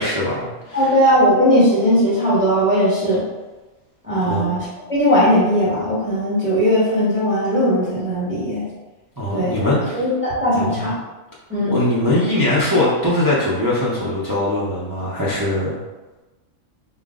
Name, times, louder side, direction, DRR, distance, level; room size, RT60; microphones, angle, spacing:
voice 1, 0.0-0.9 4.2-4.5 9.2-10.0 10.5-10.9 11.6-15.8, left 1 dB, 25° right, -8 dB, 0.4 m, -21 dB
voice 2, 0.7-3.2 4.0-8.6 9.3-10.9 11.5-11.8, equal, 5° right, -10 dB, 0.9 m, -18 dB
4.0 x 2.0 x 3.7 m, 1.2 s
omnidirectional pair, 1.4 m